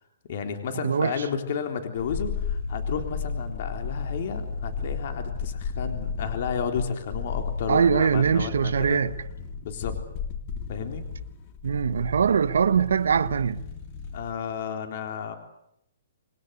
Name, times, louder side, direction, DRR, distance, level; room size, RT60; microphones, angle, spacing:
voice 1, 0.3-9.0 9.6-9.9 10.7-11.0 14.1-15.3, left 6 dB, 50° left, 3.7 m, -32 dB
voice 2, 0.8-1.2 7.7-9.2 11.6-13.6, right 6 dB, 85° right, 1.1 m, -22 dB
sound 1, 2.0-14.3 14.6-14.7, left 5 dB, 30° left, 2.9 m, -34 dB
27.5 x 22.0 x 8.2 m
hypercardioid pair, 165°, 0 cm